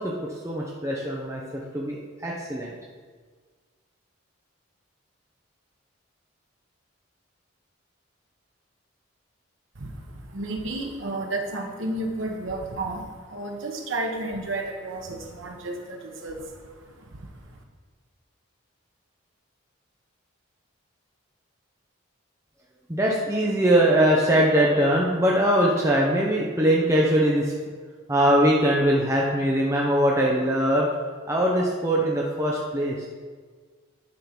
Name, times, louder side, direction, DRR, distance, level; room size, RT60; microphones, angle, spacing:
voice 1, 0.0-2.7 22.9-27.5 28.1-30.9 31.3-33.1, right 1 dB, 15° right, -3 dB, 0.7 m, -22 dB
voice 2, 9.7-17.6, right 2 dB, 75° right, 2 dB, 1.1 m, -32 dB
10.0 x 3.8 x 5.9 m, 1.5 s
head